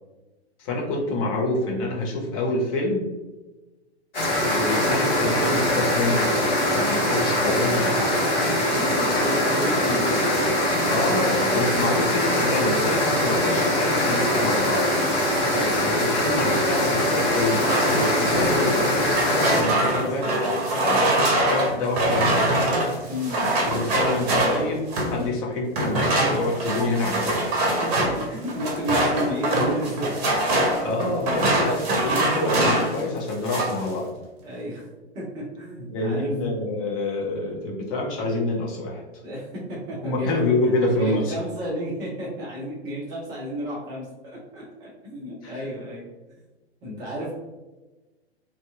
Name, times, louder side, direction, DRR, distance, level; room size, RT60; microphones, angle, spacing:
voice 1, 0.6-3.1 4.5-6.4 6.7-8.1 10.9-14.9 15.8-20.3 20.7-22.6 23.7-27.5 30.8-34.1 35.9-39.0 40.0-41.4 45.4-45.6, left 2 dB, 35° left, -1 dB, 0.6 m, -27 dB
sound 1, 4.1-19.6, left 1 dB, 55° left, 0.9 m, -22 dB
voice 2, 8.5-10.3 10.7-10.8 15.4-15.7 19.8-20.4 23.1-23.4 25.1-25.3 27.8-30.3 34.4-34.9 35.1-36.3 39.2-40.3 40.7-46.0 46.8-47.3, equal, 15° right, -5 dB, 0.3 m, -32 dB
sound 2, 17.5-25.2 25.7-33.0 33.3-33.9, right 1 dB, 40° right, 0.7 m, -24 dB
2.6 x 2.3 x 2.3 m, 1.1 s
figure-of-eight pair, 105°, 33 cm